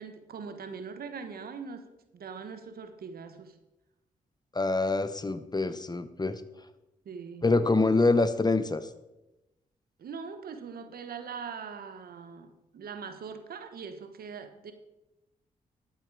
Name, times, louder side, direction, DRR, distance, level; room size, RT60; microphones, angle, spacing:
voice 1, 0.0-3.6 7.0-7.5 10.0-14.7, right 5 dB, 75° right, 8 dB, 1.2 m, -42 dB
voice 2, 4.5-6.4 7.4-8.9, left 3 dB, 25° left, 12 dB, 1.0 m, -25 dB
12.0 x 8.0 x 4.9 m, 0.97 s
cardioid pair, 55°, 16 cm